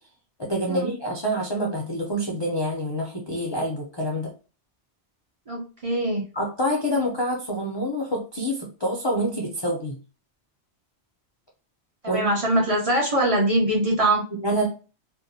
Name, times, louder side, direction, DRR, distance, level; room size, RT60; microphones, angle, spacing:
voice 1, 0.4-4.3 6.3-10.0 12.1-12.3 14.4-14.7, equal, 45° left, -2 dB, 0.3 m, -27 dB
voice 2, 5.5-6.2 12.0-14.2, right 1 dB, 40° right, -3 dB, 0.6 m, -22 dB
2.6 x 2.0 x 2.6 m, 0.35 s
omnidirectional pair, 1.2 m